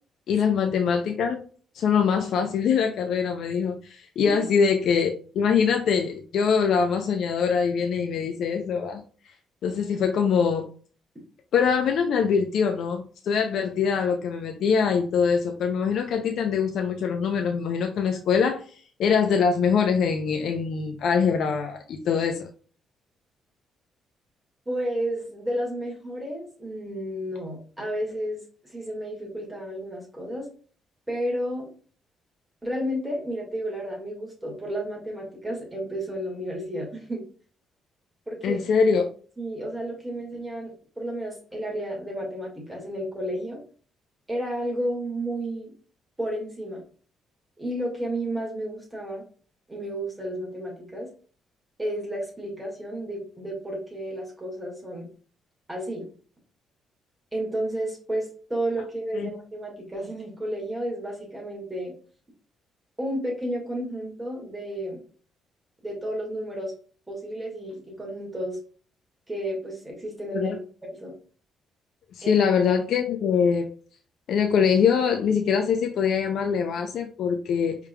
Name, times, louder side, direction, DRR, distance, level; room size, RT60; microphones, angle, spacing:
voice 1, 0.3-1.4 1.7-9.0 9.6-10.6 11.5-18.6 19.0-22.5 38.4-39.1 59.1-59.3 70.3-70.6 72.2-73.7 74.3-77.8, left 6 dB, 70° left, 4 dB, 0.5 m, -23 dB
voice 2, 24.7-30.5 31.1-31.7 32.6-37.2 38.3-38.6 39.4-43.6 44.3-45.7 46.2-46.8 47.6-49.2 49.7-51.1 51.8-55.1 55.7-56.1 57.3-61.9 63.0-65.0 65.8-66.7 67.1-68.6 69.3-70.6 71.0-71.1 72.2-72.5, right 1 dB, 15° right, -2 dB, 1.7 m, -32 dB
5.0 x 3.2 x 2.2 m, 0.42 s
cardioid pair, 90°, 0 cm